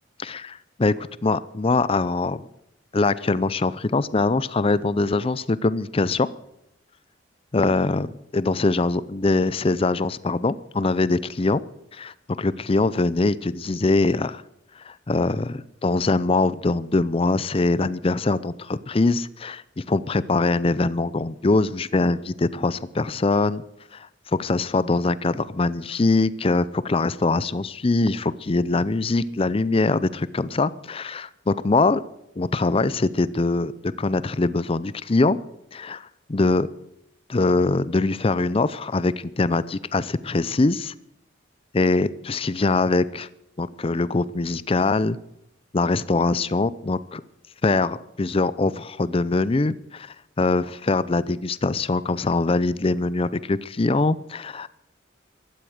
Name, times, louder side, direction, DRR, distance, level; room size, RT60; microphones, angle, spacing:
voice 1, 0.2-0.9 1.2-2.5 2.9-6.3 7.5-11.6 11.9-14.4 14.8-23.6 23.9-24.1 24.4-32.0 32.4-33.7 34.0-35.4 35.7-36.7 37.3-40.9 41.7-43.3 43.6-45.2 45.7-47.2 47.6-54.7, left 3 dB, 30° left, 17 dB, 0.5 m, -23 dB
16.0 x 12.5 x 6.5 m, 0.81 s
head